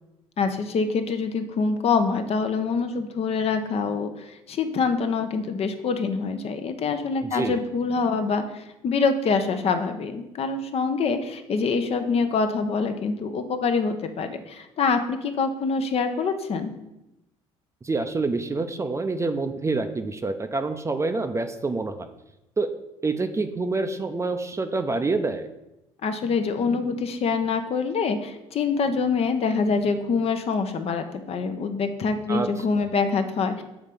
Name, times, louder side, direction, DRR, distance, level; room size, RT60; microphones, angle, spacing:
voice 1, 0.4-16.7 26.0-33.6, left 4 dB, 50° left, 7 dB, 0.8 m, -25 dB
voice 2, 7.2-7.6 17.8-22.1 22.6-22.7 23.0-25.5 32.3-32.5, right 3 dB, 20° right, 8 dB, 0.6 m, -27 dB
7.1 x 3.2 x 5.3 m, 0.90 s
supercardioid pair, 70°, 13 cm